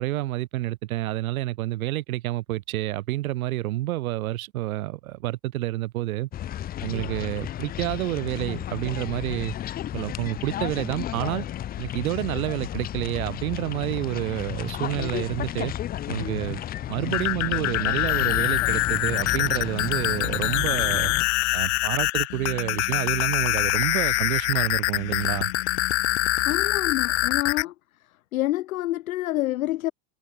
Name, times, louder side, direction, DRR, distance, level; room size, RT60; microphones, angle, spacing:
voice 1, 0.0-6.3 6.8-9.5 9.9-11.5 11.8-15.7 16.1-16.6 16.9-21.1 21.5-25.5, right 16 dB, 85° right, 1.4 m, -29 dB
sound 1, 6.3-21.2, left 12 dB, 20° left, 2.3 m, -33 dB
sound 2, 17.0-27.6, left 22 dB, 55° left, 2.3 m, -25 dB
voice 2, 26.4-27.7 28.3-29.9, left 16 dB, 80° left, 2.8 m, -27 dB
supercardioid pair, 170°, 41 cm